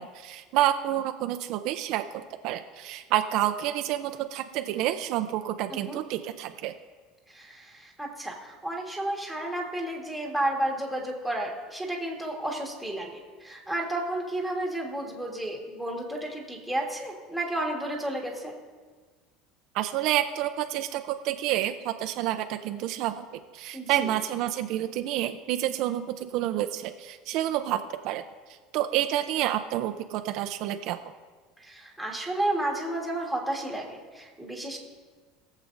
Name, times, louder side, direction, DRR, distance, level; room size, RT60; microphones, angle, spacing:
voice 1, 0.0-6.7 19.7-23.2 23.5-28.2 28.7-31.0, right 13 dB, 55° right, 8 dB, 0.5 m, -29 dB
voice 2, 7.3-18.5 23.7-24.1 31.6-34.8, right 1 dB, ahead, -2 dB, 1.5 m, -32 dB
21.5 x 7.4 x 2.6 m, 1.5 s
cardioid pair, 150°, 0 cm